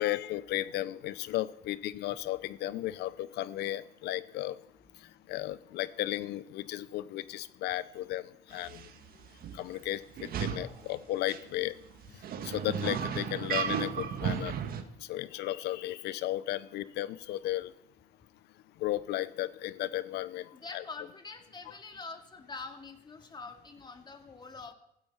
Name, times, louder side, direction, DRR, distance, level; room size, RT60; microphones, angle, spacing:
voice 1, 0.0-4.6 5.3-8.8 9.5-11.7 12.4-14.5 15.1-17.7 18.8-20.8, left 14 dB, 80° left, 16 dB, 0.8 m, -34 dB
sound 1, 8.6-8.9 9.4-9.6 10.2-10.7 11.3-11.4 12.0-14.8, right 8 dB, 60° right, 1.6 m, -34 dB
voice 2, 20.5-24.7, left 4 dB, 25° left, 5 dB, 2.4 m, -45 dB
15.5 x 13.5 x 5.7 m, 0.78 s
cardioid pair, 110°, 17 cm